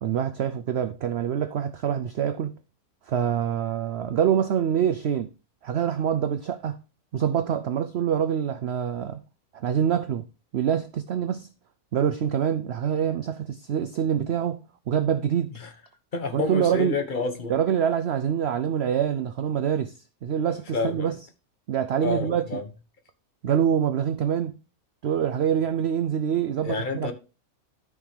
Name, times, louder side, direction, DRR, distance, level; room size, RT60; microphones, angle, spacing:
voice 1, 0.0-2.5 3.1-5.3 5.6-6.8 7.1-9.2 9.5-10.2 10.5-11.5 11.9-14.6 14.9-15.5 16.3-17.0 17.5-19.9 20.2-21.1 21.7-22.4 23.4-24.6 25.0-27.1, right 8 dB, 65° right, 0.6 m, -25 dB
voice 2, 16.1-17.5 20.5-21.1 22.0-22.6 26.6-27.1, left 4 dB, 35° left, 1.2 m, -29 dB
13.0 x 5.5 x 3.2 m
omnidirectional pair, 1.6 m